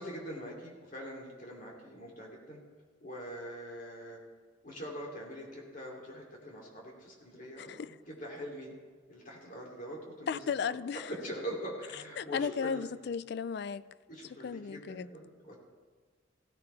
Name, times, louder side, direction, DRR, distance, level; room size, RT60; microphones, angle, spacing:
voice 1, 0.0-2.6 3.0-4.2 4.6-8.7 9.1-10.4 11.1-12.8 14.1-15.6, equal, 45° left, 2.9 m, -43 dB
voice 2, 7.6-8.0 10.3-11.1 12.2-13.9 14.4-15.1, left 6 dB, 60° left, 0.3 m, -35 dB
16.0 x 15.5 x 3.4 m
head